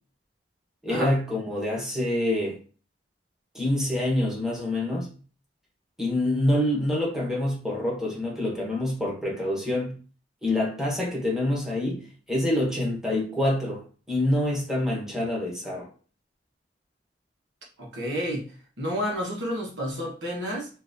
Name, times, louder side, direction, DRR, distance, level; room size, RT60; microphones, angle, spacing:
voice 1, 0.8-2.6 3.5-5.1 6.0-10.0 10.4-15.9, left 1 dB, 5° right, 1.1 m, -26 dB
voice 2, 17.8-18.4 18.8-20.7, equal, 85° right, 1.2 m, -30 dB
3.9 x 2.6 x 2.6 m
head